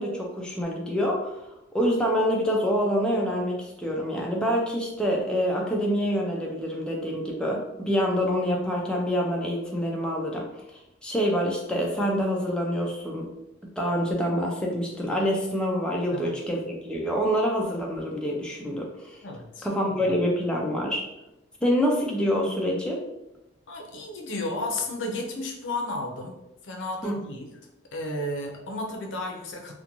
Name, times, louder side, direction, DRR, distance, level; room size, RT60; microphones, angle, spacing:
voice 1, 0.0-1.4 1.7-10.4 11.0-13.3 13.8-19.2 19.6-21.0 21.6-23.0 27.0-27.2, equal, 5° left, -2 dB, 0.3 m, -26 dB
voice 2, 19.2-19.7 20.0-20.1 23.7-26.4 26.6-27.5 27.9-29.7, left 2 dB, 70° left, 2 dB, 0.5 m, -33 dB
2.5 x 2.2 x 2.9 m, 0.90 s
head